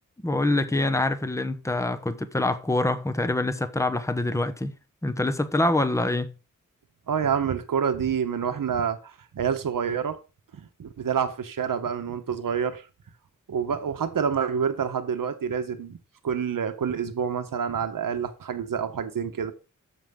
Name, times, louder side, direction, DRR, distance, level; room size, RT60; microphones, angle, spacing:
voice 1, 0.2-4.7 5.0-6.3, left 2 dB, 10° left, 1.0 m, -25 dB
voice 2, 7.1-10.2 10.5-12.9 13.5-16.0 16.2-19.5, right 7 dB, 80° right, 1.3 m, -27 dB
11.5 x 7.3 x 3.8 m
wide cardioid pair, 95°, 32 cm